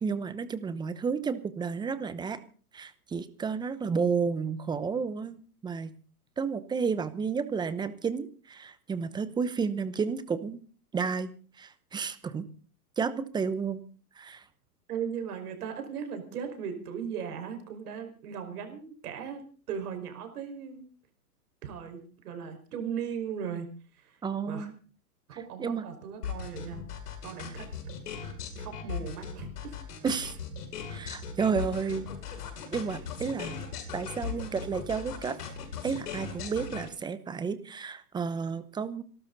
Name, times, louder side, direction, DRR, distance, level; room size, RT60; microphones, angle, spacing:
voice 1, 0.0-2.4 2.7-5.9 6.4-10.6 10.9-11.3 11.6-12.5 13.0-13.8 14.2-14.4 24.2-24.7 25.6-25.9 30.0-30.4 30.9-32.1 32.7-33.6 33.9-35.4 35.8-39.0, right 5 dB, 10° right, 14 dB, 0.8 m, -31 dB
voice 2, 14.9-19.4 19.7-20.8 21.6-23.7 24.0-24.2 24.5-24.7 25.3-26.8 27.2-27.7 28.6-29.7, right 7 dB, 70° right, 6 dB, 5.3 m, -37 dB
sound 1, 26.2-36.9, left 7 dB, 75° left, 6.6 m, -38 dB
27.0 x 13.0 x 4.0 m, 0.40 s
hypercardioid pair, 140°, 47 cm